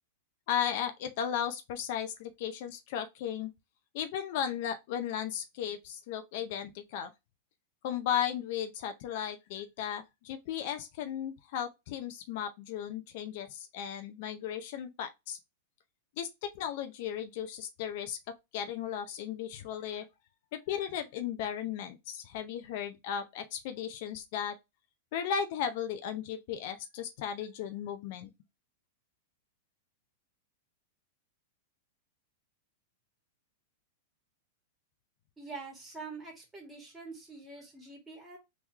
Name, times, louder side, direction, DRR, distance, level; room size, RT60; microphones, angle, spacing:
voice 1, 0.5-3.5 3.9-7.1 7.8-15.4 16.2-18.2 18.5-20.1 20.5-24.6 25.1-28.3, left 9 dB, 60° left, 0.6 m, -35 dB
voice 2, 35.4-38.4, right 4 dB, 10° right, 1.8 m, -45 dB
3.6 x 3.0 x 2.9 m
hypercardioid pair, 130°, 0 cm